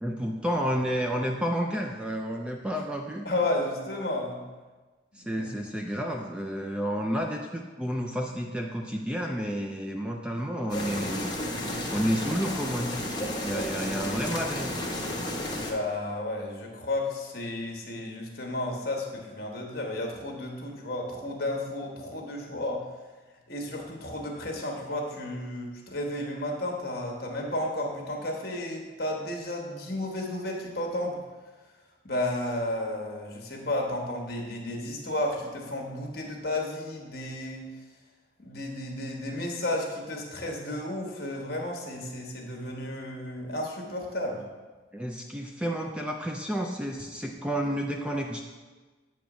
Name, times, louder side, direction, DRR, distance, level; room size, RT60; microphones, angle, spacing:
voice 1, 0.0-3.3 5.1-11.3 11.9-13.1 13.4-14.8 44.9-48.4, equal, 5° right, 1 dB, 0.3 m, -30 dB
voice 2, 3.2-4.4 5.3-5.5 15.7-22.9 23.5-31.2 32.0-37.7 38.4-44.4, left 1 dB, 55° left, 1 dB, 1.2 m, -32 dB
sound 1, 10.7-15.7, left 1 dB, 20° left, 0.8 m, -32 dB
8.6 x 3.1 x 6.0 m, 1.3 s
head